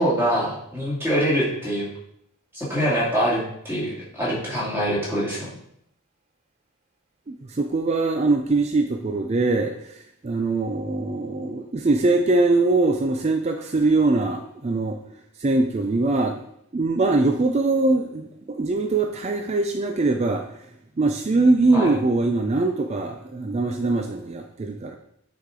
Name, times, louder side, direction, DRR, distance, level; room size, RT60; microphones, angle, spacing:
voice 1, 0.0-1.9 2.5-5.5 21.7-21.9, equal, 10° right, -6 dB, 2.4 m, -24 dB
voice 2, 7.3-15.0 15.4-16.4 16.7-20.6 21.0-25.0, right 3 dB, 30° right, 5 dB, 0.4 m, -22 dB
8.5 x 4.8 x 3.8 m, 0.74 s
head